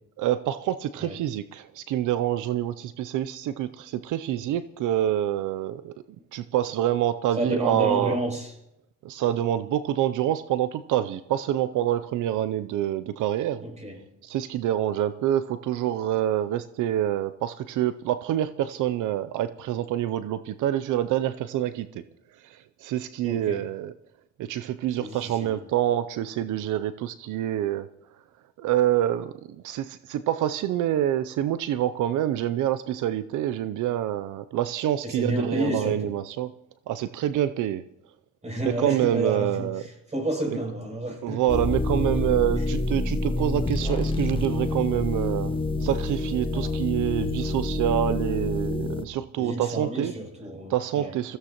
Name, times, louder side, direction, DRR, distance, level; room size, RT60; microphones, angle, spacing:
voice 1, 0.2-5.9 6.3-8.2 9.0-13.6 14.2-22.0 22.4-23.9 24.4-27.9 28.6-29.3 29.6-36.5 36.9-37.8 38.6-39.8 41.2-45.5 45.8-50.1 50.7-51.4, right 12 dB, 80° right, 13 dB, 0.6 m, -26 dB
voice 2, 7.4-8.5 13.6-14.0 23.2-23.6 25.0-25.6 35.0-36.1 38.4-41.4 42.1-42.2 46.5-46.7 49.4-51.1, right 1 dB, 20° right, 0 dB, 7.0 m, -30 dB
sound 1, 41.5-49.0, left 2 dB, 15° left, 1.0 m, -27 dB
22.5 x 16.0 x 3.0 m, 0.84 s
cardioid pair, 90°, 30 cm